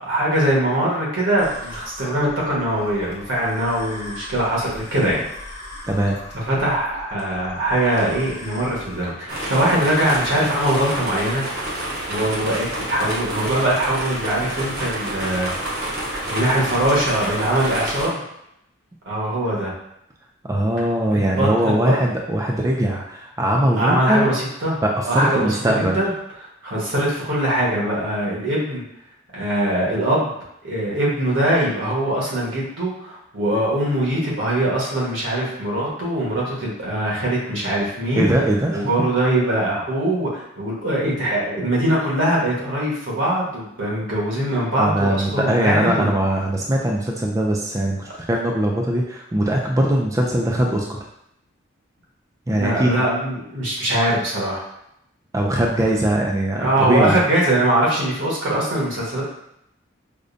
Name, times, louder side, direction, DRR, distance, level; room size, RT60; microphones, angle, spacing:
voice 1, 0.0-5.2 6.4-15.5 16.3-18.2 19.0-19.7 21.1-21.9 23.8-24.8 25.0-26.1 26.6-28.8 29.3-30.3 30.6-38.3 38.7-46.1 52.5-54.6 56.6-59.2, right 1 dB, 70° right, -5 dB, 1.2 m, -22 dB
sound 1, 1.4-9.1, left 1 dB, 35° left, 1.1 m, -39 dB
voice 2, 5.9-6.2 20.5-24.3 24.8-26.0 38.1-38.9 44.8-51.0 52.5-52.9 55.3-57.2, right 1 dB, 15° right, 0 dB, 0.3 m, -21 dB
sound 2, 9.3-18.1, right 1 dB, 55° right, 0.8 m, -28 dB
4.9 x 2.2 x 2.6 m, 0.78 s
head